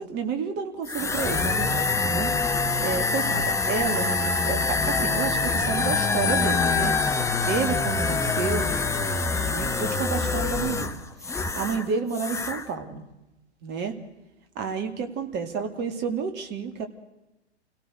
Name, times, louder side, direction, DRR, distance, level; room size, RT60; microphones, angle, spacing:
voice 1, 0.0-2.3 2.8-8.7 9.4-13.0 13.6-13.9 14.5-16.9, right 5 dB, 30° right, 7 dB, 2.9 m, -30 dB
sound 1, 0.8-11.8 12.1-12.6, left 4 dB, 10° left, 1.2 m, -25 dB
29.0 x 18.0 x 6.7 m, 0.95 s
figure-of-eight pair, 105°, 33 cm